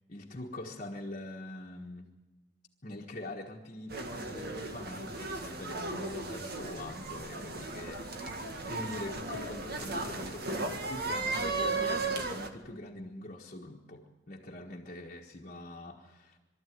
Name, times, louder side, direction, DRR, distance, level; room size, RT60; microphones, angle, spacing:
voice 1, 0.1-2.1 2.8-8.1 8.7-16.4, left 1 dB, 40° left, -1 dB, 1.5 m, -43 dB
sound 1, 3.9-12.5, right 3 dB, 55° right, 1.9 m, -36 dB
23.0 x 13.5 x 9.4 m, 1.1 s
head